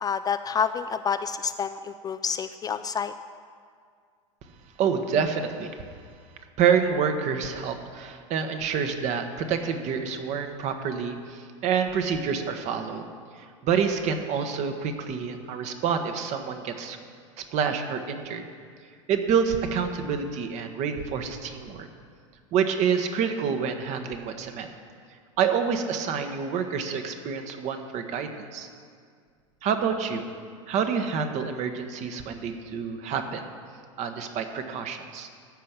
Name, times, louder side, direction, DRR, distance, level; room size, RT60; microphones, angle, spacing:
voice 1, 0.0-3.1, left 6 dB, 25° left, 11 dB, 0.4 m, -28 dB
voice 2, 4.8-5.7 6.6-13.1 13.6-17.0 17.4-18.4 19.1-21.9 22.5-24.7 25.4-28.7 29.6-30.2 30.7-33.5 34.0-35.3, right 6 dB, 45° right, 6 dB, 1.3 m, -27 dB
13.5 x 5.6 x 7.4 m, 2.1 s
hypercardioid pair, 85°, 17 cm